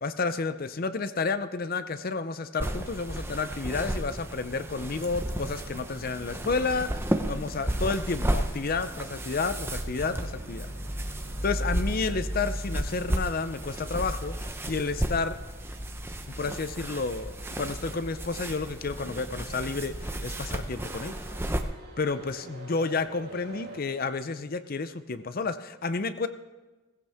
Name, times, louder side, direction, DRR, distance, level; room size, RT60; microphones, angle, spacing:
voice 1, 0.0-10.7 11.4-14.3 14.7-15.4 16.4-21.2 22.0-26.3, left 4 dB, 45° left, 12 dB, 0.6 m, -31 dB
sound 1, 2.6-21.6, right 1 dB, 10° right, 0.7 m, -33 dB
sound 2, 8.7-23.8, right 1 dB, 60° right, 5.3 m, -50 dB
17.0 x 16.0 x 3.5 m, 1.2 s
head